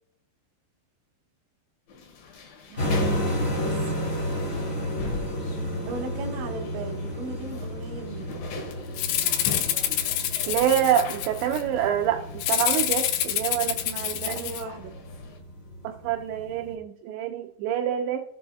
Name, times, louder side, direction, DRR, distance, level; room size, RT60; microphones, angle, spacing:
sound 1, 1.9-15.4, left 4 dB, 60° left, 2.8 m, -42 dB
voice 1, 2.7-4.2 5.9-8.5 14.1-15.0, right 3 dB, 65° right, 0 dB, 2.2 m, -38 dB
sound 2, 2.8-16.7, equal, 35° left, 1.2 m, -32 dB
Rattle (instrument), 9.0-11.6 12.4-14.6, left 11 dB, 85° left, 2.4 m, -27 dB
voice 2, 10.5-14.5 15.8-18.2, right 10 dB, 85° right, 4 dB, 2.5 m, -26 dB
15.0 x 7.6 x 2.3 m, 0.78 s
omnidirectional pair, 5.7 m